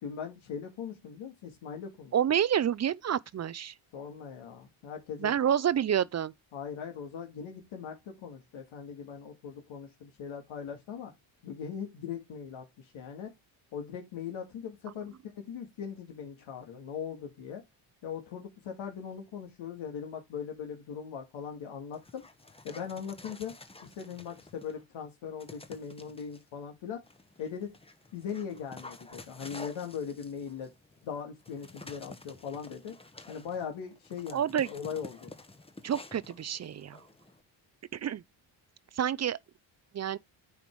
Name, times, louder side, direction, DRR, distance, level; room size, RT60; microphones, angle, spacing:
voice 1, 0.0-2.1 3.9-5.4 6.5-11.1 11.4-13.3 13.7-15.1 15.4-17.6 18.0-22.2 22.6-23.5 23.8-27.0 27.4-27.7 28.1-30.7 31.0-33.0 33.3-35.3, left 7 dB, 80° left, 2.0 m, -40 dB
voice 2, 2.1-3.7 5.2-6.3 34.3-34.7 35.8-37.0 37.9-38.2 38.9-39.4 39.9-40.2, right 9 dB, 35° right, 0.5 m, -28 dB
Dog, 21.9-24.8 25.4-26.4 27.0-37.4, left 2 dB, 10° left, 1.0 m, -50 dB
9.4 x 3.6 x 4.6 m
cardioid pair, 100°, 47 cm